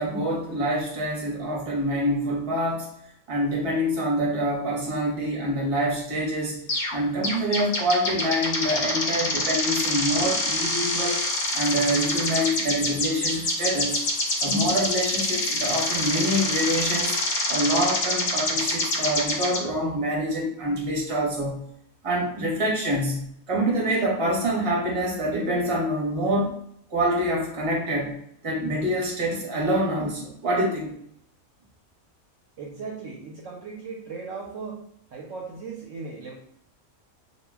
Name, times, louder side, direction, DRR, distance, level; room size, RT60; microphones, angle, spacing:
voice 1, 0.0-2.9 3.3-6.6 6.9-11.2 11.5-14.0 14.4-17.1 17.5-21.7 22.0-26.5 26.9-28.1 28.4-31.0, equal, 30° right, -3 dB, 0.7 m, -26 dB
sound 1, 6.7-7.0 7.2-19.6, left 2 dB, 60° left, 0.5 m, -26 dB
voice 2, 32.6-34.8 35.1-36.3, right 4 dB, 70° right, -1 dB, 0.8 m, -37 dB
2.3 x 2.1 x 3.3 m, 0.69 s
omnidirectional pair, 1.5 m